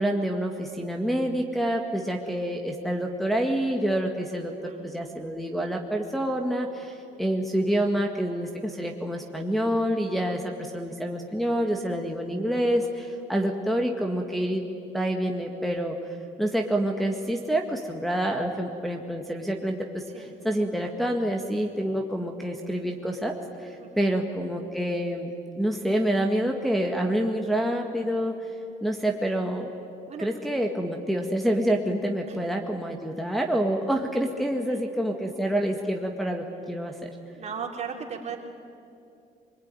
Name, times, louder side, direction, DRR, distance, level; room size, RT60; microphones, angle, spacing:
voice 1, 0.0-14.6 14.9-16.0 16.4-29.7 30.2-37.1, right 1 dB, ahead, 0 dB, 1.8 m, -27 dB
voice 2, 4.6-5.2 20.1-20.3 23.8-24.2 30.1-30.3 32.3-32.4 34.7-34.8 37.4-38.4, right 6 dB, 40° right, 1 dB, 3.8 m, -37 dB
24.0 x 22.0 x 9.8 m, 2.6 s
cardioid pair, 110°, 17 cm